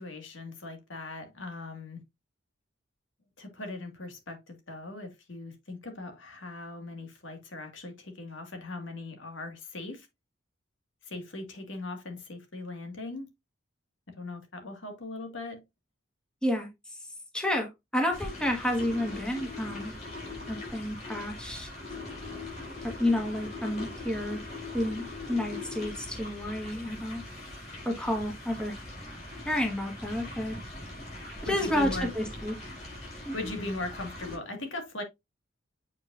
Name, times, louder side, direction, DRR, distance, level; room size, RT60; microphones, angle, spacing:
voice 1, 0.0-2.0 3.4-10.1 11.0-13.3 14.2-15.6 31.5-32.1 33.3-35.0, left 2 dB, 70° left, 1.9 m, -39 dB
voice 2, 16.4-17.0 17.3-19.9 20.5-21.7 22.8-24.4 24.7-27.2 27.8-28.8 29.4-30.6 31.4-32.6 33.2-33.5, left 1 dB, 5° left, 1.4 m, -30 dB
sound 1, 18.1-34.4, left 2 dB, 35° left, 4.9 m, -41 dB
8.2 x 4.9 x 2.5 m
head